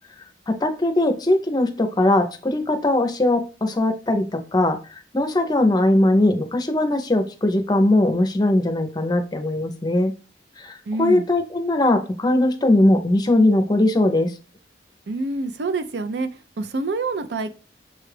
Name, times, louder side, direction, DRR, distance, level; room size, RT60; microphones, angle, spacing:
voice 1, 0.5-4.8 5.1-10.1 10.6-14.3, left 1 dB, 20° left, 6 dB, 0.6 m, -20 dB
voice 2, 10.9-11.2 15.1-16.3 16.6-17.5, right 3 dB, 65° right, 9 dB, 0.5 m, -26 dB
6.8 x 2.3 x 3.2 m, 0.36 s
head